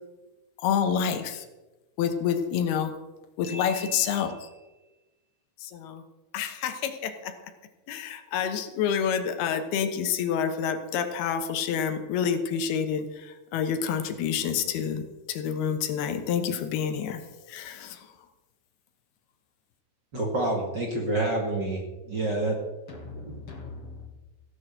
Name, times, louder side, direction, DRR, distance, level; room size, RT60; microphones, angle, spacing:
voice 1, 0.6-1.4 2.0-2.9 3.4-4.4 5.6-6.0 6.3-7.3 7.9-17.2 17.5-18.0, left 7 dB, 85° left, 3.2 m, -28 dB
voice 2, 3.4-5.0 22.9-24.1, left 2 dB, 50° left, 2.0 m, -43 dB
voice 3, 20.1-22.6, right 2 dB, 35° right, 2.1 m, -28 dB
16.5 x 8.1 x 7.8 m
omnidirectional pair, 4.4 m